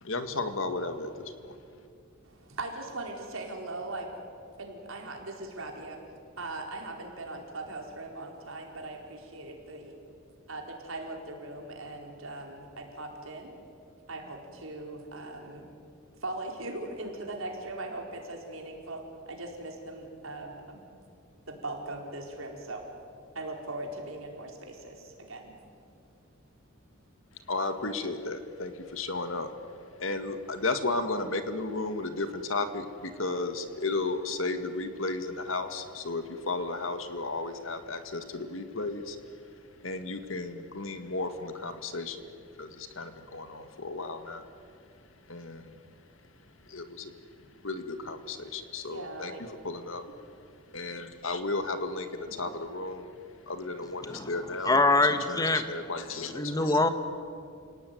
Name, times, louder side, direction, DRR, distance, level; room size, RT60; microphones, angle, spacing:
voice 1, 0.0-1.6 27.5-29.5 30.0-39.2 39.8-42.3 42.6-44.4 45.3-45.8 46.7-47.2 47.6-50.0 50.7-53.1 53.5-54.8 55.3-56.8, left 3 dB, 70° left, 8 dB, 1.9 m, -34 dB
voice 2, 2.2-4.1 4.6-6.0 6.4-9.9 10.5-13.5 14.1-15.7 16.2-20.8 21.5-22.8 23.3-25.5 48.8-49.4 52.4-52.5, right 2 dB, 75° right, 2 dB, 4.5 m, -40 dB
voice 3, 54.6-55.6 56.3-56.9, left 2 dB, 20° left, 9 dB, 1.2 m, -24 dB
29.0 x 18.5 x 9.4 m, 2.5 s
head